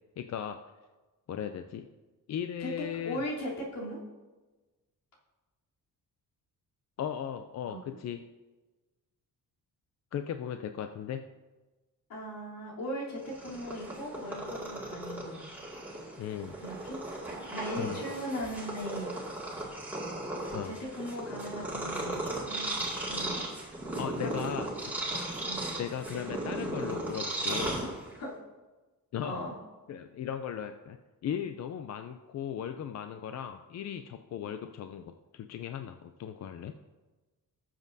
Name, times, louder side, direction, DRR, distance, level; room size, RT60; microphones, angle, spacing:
voice 1, 0.2-0.6 1.3-1.9 2.3-3.2 7.0-8.2 10.1-11.3 16.2-16.6 17.8-18.0 20.5-20.7 24.0-24.9 25.8-27.8 29.1-29.4 29.9-31.0 31.2-36.7, left 9 dB, 50° left, 7 dB, 0.4 m, -37 dB
voice 2, 3.0-4.0 7.6-8.0 12.1-15.5 16.6-17.0 17.5-19.2 20.6-23.4 24.2-24.4 25.5-25.6 28.2-28.3 29.2-29.5, equal, 70° left, -5 dB, 3.3 m, -38 dB
Purr, 13.2-28.3, right 2 dB, 5° right, 2.2 m, -36 dB
18.0 x 7.4 x 2.7 m, 1.2 s
wide cardioid pair, 165°, 35 cm